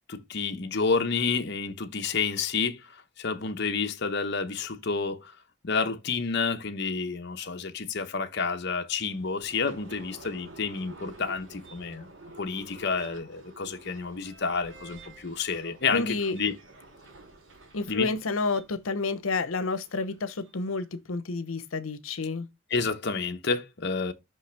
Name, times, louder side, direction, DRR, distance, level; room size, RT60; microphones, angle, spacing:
voice 1, 0.1-5.3 5.6-12.1 12.4-16.5 17.9-18.1 22.7-24.1, left 5 dB, 55° left, 0.9 m, -30 dB
sound 1, 9.0-20.8, right 2 dB, 70° right, 3.1 m, -50 dB
voice 2, 15.9-16.4 17.7-22.5, left 3 dB, 90° left, 0.8 m, -30 dB
5.9 x 5.6 x 3.3 m
head